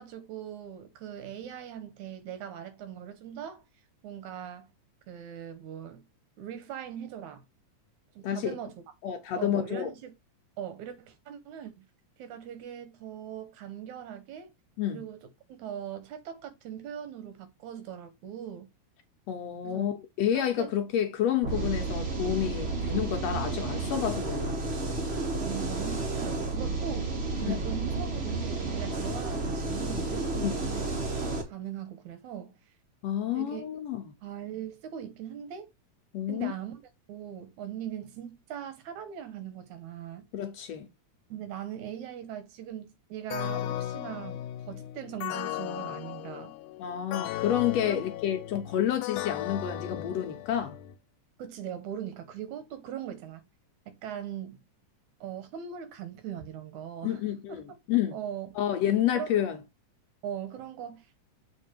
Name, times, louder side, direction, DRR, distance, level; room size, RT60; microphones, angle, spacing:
voice 1, 0.0-3.6 4.0-4.7 5.1-6.0 6.4-7.4 8.2-8.8 9.4-10.1 10.6-11.8 12.2-14.5 14.9-18.7 19.6-19.8 20.3-20.7 25.1-30.9 31.4-32.6 33.3-33.6 34.2-35.7 36.3-36.8 37.1-40.3 41.3-46.5 47.8-48.0 51.4-53.4 53.9-54.6 55.2-57.6 58.1-58.6 59.1-59.4 60.2-61.1, right 9 dB, 75° right, 2.4 m, -40 dB
voice 2, 8.2-8.5 9.0-9.9 14.8-15.0 19.3-24.6 27.5-27.6 30.4-30.6 33.0-34.1 36.1-36.5 40.3-40.9 46.8-50.8 57.0-58.2 58.6-59.6, left 10 dB, 70° left, 1.8 m, -29 dB
sound 1, 21.4-31.4, right 3 dB, 60° right, 0.6 m, -31 dB
sound 2, 43.3-51.0, left 13 dB, 90° left, 2.1 m, -36 dB
7.1 x 3.7 x 4.4 m
omnidirectional pair, 3.5 m